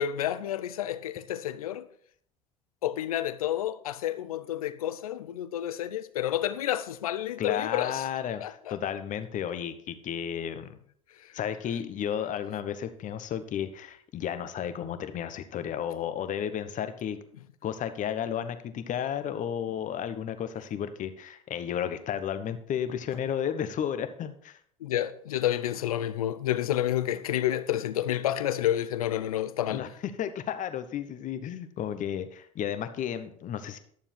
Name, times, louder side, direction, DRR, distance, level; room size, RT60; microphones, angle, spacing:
voice 1, 0.0-1.9 2.8-8.1 8.4-8.8 11.2-11.4 24.8-29.8, left 12 dB, 85° left, 0.6 m, -30 dB
voice 2, 7.4-10.8 11.3-17.2 17.6-24.6 29.7-33.8, left 9 dB, 45° left, 1.1 m, -33 dB
11.5 x 7.1 x 4.5 m
hypercardioid pair, 75°, 18 cm